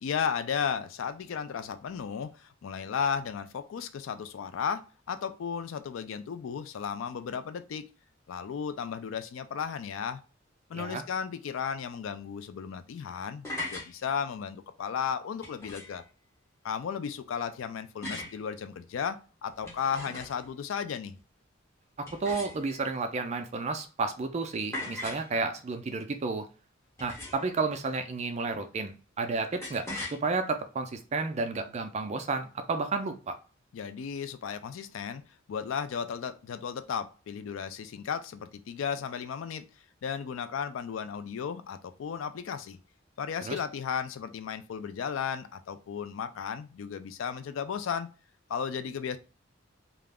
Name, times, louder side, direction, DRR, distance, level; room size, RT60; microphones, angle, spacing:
voice 1, 0.0-7.9 8.3-10.2 10.7-16.0 16.6-21.2 33.7-35.2 35.5-39.7 40.0-42.8 43.2-48.1 48.5-49.2, left 7 dB, 70° left, 10 dB, 0.3 m, -34 dB
sound 1, 13.4-13.9 15.4-16.0 18.0-18.4 19.5-20.5 22.1-22.9 24.7-25.3 27.0-27.6 29.6-30.2, left 2 dB, 15° left, 0.9 m, -39 dB
voice 2, 22.2-26.5 27.0-33.3 43.5-43.6, right 3 dB, 35° right, 7 dB, 0.4 m, -32 dB
2.3 x 2.0 x 3.4 m, 0.35 s
head